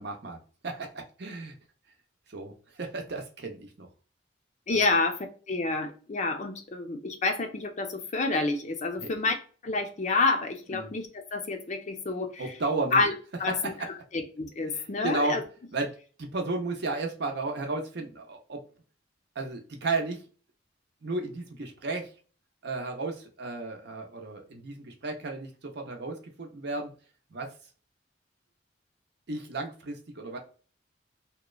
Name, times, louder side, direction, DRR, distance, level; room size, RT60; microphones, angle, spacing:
voice 1, 0.0-1.5 2.3-3.9 4.7-4.8 9.0-9.1 10.7-10.9 12.4-13.0 14.7-15.4 15.7-15.9 16.2-18.6 19.4-20.2 21.0-22.1 22.6-26.9 27.3-27.5 29.3-30.4, right 3 dB, 60° right, 3 dB, 0.7 m, -33 dB
voice 2, 4.7-5.2 5.5-9.3 9.6-12.4 12.9-13.1 13.4-13.7 14.1-15.4, left 3 dB, 40° left, 5 dB, 0.5 m, -28 dB
2.9 x 2.1 x 2.3 m, 0.39 s
head